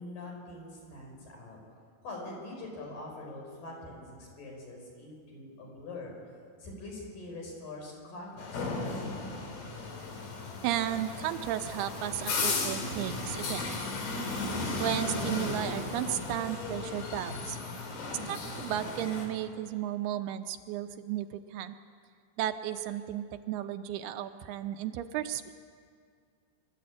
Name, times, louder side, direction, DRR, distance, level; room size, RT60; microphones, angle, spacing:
voice 1, 0.0-1.6 2.0-6.2 6.6-9.0, left 2 dB, 55° left, -1 dB, 6.7 m, -44 dB
sound 1, 8.4-19.3, left 3 dB, 70° left, 4.8 m, -35 dB
voice 2, 10.6-13.6 14.8-17.6 18.1-21.7 22.4-25.4, right 12 dB, 80° right, 8 dB, 2.7 m, -34 dB
25.5 x 13.5 x 8.6 m, 2.2 s
omnidirectional pair, 4.6 m